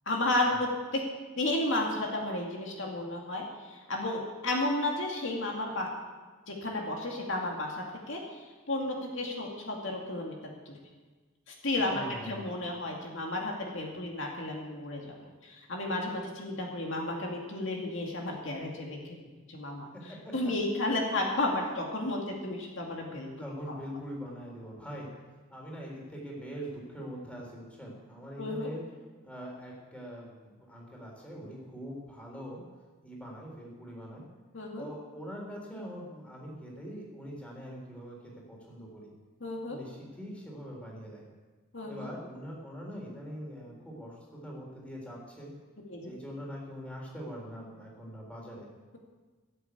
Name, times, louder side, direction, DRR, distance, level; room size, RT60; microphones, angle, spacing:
voice 1, 0.1-1.0 1.4-5.9 6.5-10.3 10.7-10.8 11.5-15.1 15.4-19.0 19.5-19.9 20.3-23.3 23.7-23.8 28.4-28.7 34.5-34.9 39.4-39.8 41.7-42.1 45.9-46.1, left 2 dB, 65° left, 0 dB, 2.3 m, -32 dB
voice 2, 11.9-12.5 20.2-20.3 23.4-25.1 25.5-28.8 29.2-32.6 33.0-34.2 34.8-39.1 39.7-41.3 41.9-45.5 46.0-48.7, equal, 5° left, -2 dB, 3.8 m, -43 dB
16.0 x 8.4 x 8.3 m, 1.3 s
head